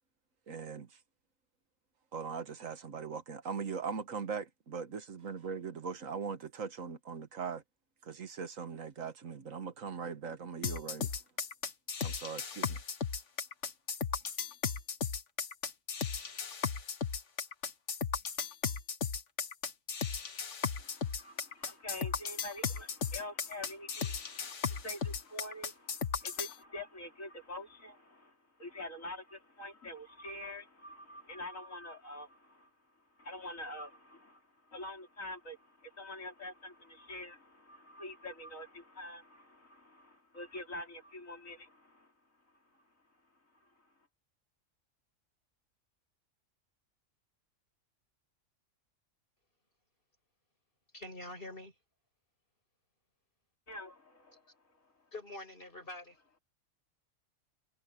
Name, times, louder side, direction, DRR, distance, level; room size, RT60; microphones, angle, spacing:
voice 1, 0.5-1.0 2.1-7.6 8.0-11.2 12.0-12.8, right 6 dB, 80° right, 1.8 m, -40 dB
sound 1, 10.6-26.6, left 6 dB, 65° left, 1.8 m, -36 dB
voice 2, 20.8-28.3 28.6-32.7 33.2-34.4 34.7-42.1 53.7-54.4, left 1 dB, 80° left, 4.6 m, -46 dB
voice 3, 50.9-51.7 55.1-56.2, left 1 dB, 45° left, 7.3 m, -45 dB
omnidirectional pair, 1.4 m